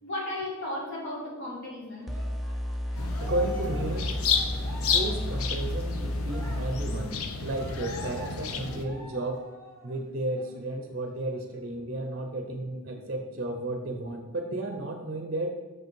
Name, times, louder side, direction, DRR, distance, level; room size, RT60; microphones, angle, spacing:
voice 1, 0.0-2.1, left 1 dB, 55° left, -4 dB, 2.4 m, -35 dB
Cheering, 2.0-10.0 10.4-10.5 10.9-11.9, equal, 15° left, 1.1 m, -46 dB
sound 1, 2.1-7.1, equal, ahead, 0.4 m, -32 dB
sound 2, 2.9-8.9, left 5 dB, 80° left, 0.7 m, -31 dB
voice 2, 3.1-4.1 4.9-9.5 9.8-15.5, right 2 dB, 45° right, 4 dB, 0.6 m, -33 dB
6.1 x 5.3 x 4.6 m, 1.3 s
head